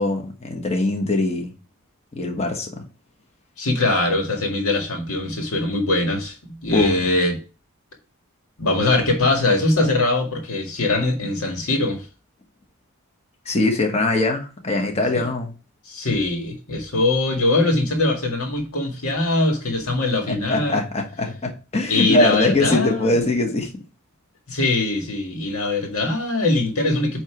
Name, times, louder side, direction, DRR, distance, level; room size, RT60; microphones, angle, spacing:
voice 1, 0.0-1.5 2.1-2.8 6.7-7.0 13.4-15.5 20.3-23.7, left 2 dB, 30° left, 1.2 m, -22 dB
voice 2, 3.6-7.4 8.6-12.0 15.1-15.2 15.9-20.8 21.9-23.1 24.5-27.2, left 2 dB, 85° left, 1.8 m, -22 dB
8.7 x 3.0 x 4.5 m
head